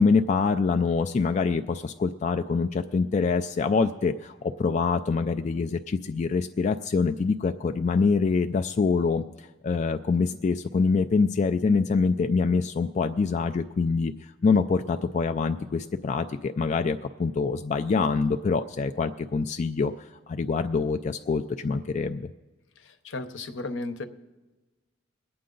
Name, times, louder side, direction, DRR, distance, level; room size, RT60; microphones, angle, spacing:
voice 1, 0.0-14.1 14.4-19.9 20.3-22.3, left 4 dB, 40° left, 6 dB, 0.3 m, -25 dB
voice 2, 22.8-24.1, left 2 dB, 70° left, 9 dB, 0.8 m, -35 dB
21.5 x 8.6 x 3.9 m, 1.2 s
head